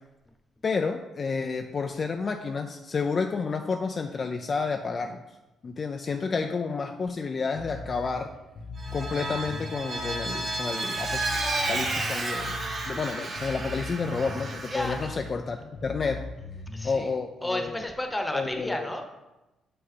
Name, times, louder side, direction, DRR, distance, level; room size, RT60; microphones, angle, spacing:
voice 1, 0.6-5.2 5.6-8.3 8.9-11.2 11.7-12.5 12.9-16.3 16.8-17.8 18.3-18.9, left 4 dB, 40° left, 5 dB, 0.5 m, -30 dB
Bass guitar, 7.5-17.0, left 3 dB, 60° left, 1.0 m, -40 dB
Vehicle, 8.8-15.1, right 2 dB, 45° right, 1.7 m, -32 dB
voice 2, 16.7-17.1 17.4-19.0, left 1 dB, 10° left, 4 dB, 1.0 m, -31 dB
6.9 x 5.4 x 4.2 m, 1.0 s
cardioid pair, 90°, 0 cm